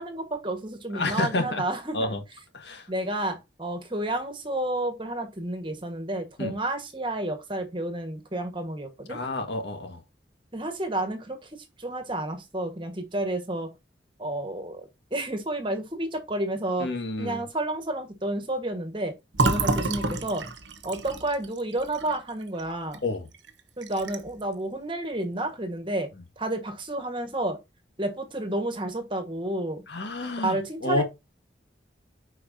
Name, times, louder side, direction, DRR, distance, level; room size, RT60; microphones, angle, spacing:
voice 1, 0.0-2.1 2.9-9.2 10.5-11.5 11.8-13.7 14.2-16.9 17.2-19.1 19.4-20.4 20.8-23.0 23.8-26.1 26.4-27.6 28.0-29.8 30.4-31.0, right 1 dB, 25° right, 1.5 m, -30 dB
voice 2, 0.9-1.6 1.9-2.2 2.5-2.9 6.4-6.6 9.1-10.0 16.8-17.5 23.0-23.3 29.9-31.0, left 2 dB, 70° left, 1.7 m, -29 dB
Fill (with liquid), 19.3-23.0 23.3-23.5 23.8-24.4, right 2 dB, 85° right, 1.1 m, -29 dB
9.7 x 4.8 x 2.7 m
head